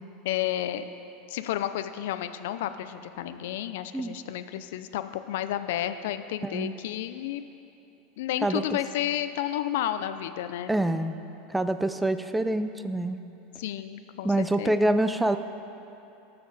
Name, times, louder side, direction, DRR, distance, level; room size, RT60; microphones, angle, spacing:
voice 1, 0.2-0.9 1.3-7.5 8.2-10.8 13.6-14.7, left 12 dB, 75° left, 11 dB, 0.5 m, -31 dB
voice 2, 6.4-6.7 8.4-8.8 10.7-11.2 11.5-13.2 14.2-15.4, right 1 dB, 5° right, 10 dB, 0.5 m, -26 dB
18.5 x 6.9 x 4.1 m, 2.9 s
supercardioid pair, 115°, 0 cm